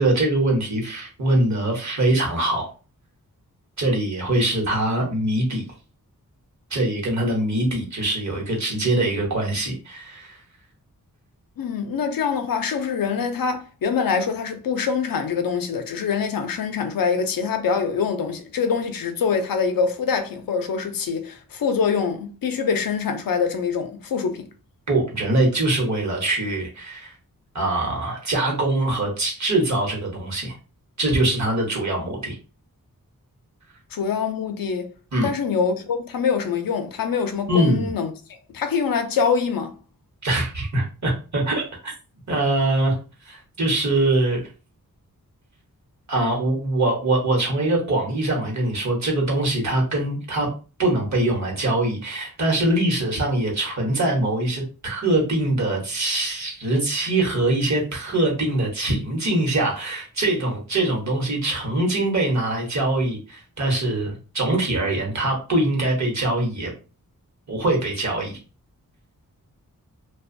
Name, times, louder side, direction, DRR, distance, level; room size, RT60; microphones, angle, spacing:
voice 1, 0.0-2.7 3.8-5.6 6.7-10.4 24.9-27.1 27.5-30.5 31.0-32.4 35.1-35.3 37.5-37.9 40.2-41.9 42.3-43.0 43.3-44.4 46.1-50.5 50.8-66.7 67.5-68.4, right 2 dB, 55° right, 1.0 m, -23 dB
voice 2, 11.6-24.5 33.9-34.9 35.2-38.1 38.5-39.7, left 6 dB, 75° left, 0.5 m, -24 dB
2.5 x 2.2 x 2.5 m
wide cardioid pair, 95°, 35 cm